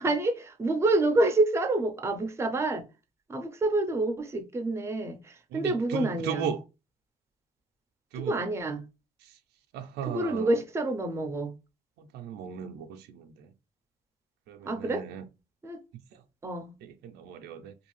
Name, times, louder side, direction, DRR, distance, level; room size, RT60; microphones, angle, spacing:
voice 1, 0.0-2.8 3.3-6.5 8.1-8.8 10.1-11.5 14.6-15.0 15.6-15.8 16.4-16.7, right 2 dB, 15° right, 0.5 m, -27 dB
voice 2, 5.5-6.6 8.1-8.4 9.2-9.4 9.7-10.6 12.0-13.5 14.5-15.2 15.9-16.2 16.8-17.7, right 6 dB, 80° right, 0.4 m, -37 dB
2.6 x 2.3 x 3.1 m
cardioid pair, 110°, 17 cm